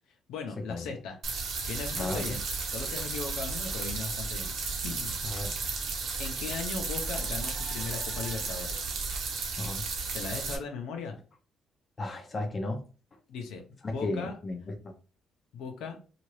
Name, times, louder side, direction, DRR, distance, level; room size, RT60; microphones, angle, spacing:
voice 1, 0.3-1.2 1.7-2.4 2.7-4.5 4.8-5.1 6.2-8.8 10.1-11.2 13.3-14.3 15.5-16.0, left 5 dB, 90° left, 3 dB, 0.7 m, -38 dB
sound 1, 1.2-10.6, right 4 dB, 65° right, 0.8 m, -34 dB
voice 2, 2.0-2.4 5.2-5.5 9.6-9.8 12.0-12.8 13.8-14.9, left 2 dB, 30° left, 3 dB, 0.6 m, -34 dB
2.8 x 2.4 x 3.1 m, 0.36 s
cardioid pair, 130°, 0 cm